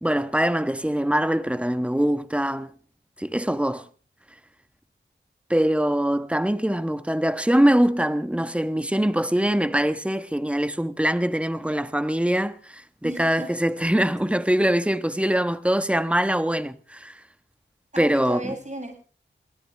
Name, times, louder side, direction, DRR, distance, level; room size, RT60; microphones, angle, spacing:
voice 1, 0.0-2.7 3.2-3.9 5.5-17.1 18.0-18.5, right 1 dB, 5° right, 1.3 m, -23 dB
voice 2, 13.0-13.5 17.9-19.0, right 1 dB, 35° right, 7.9 m, -34 dB
23.0 x 17.5 x 3.6 m
cardioid pair, 45°, 20 cm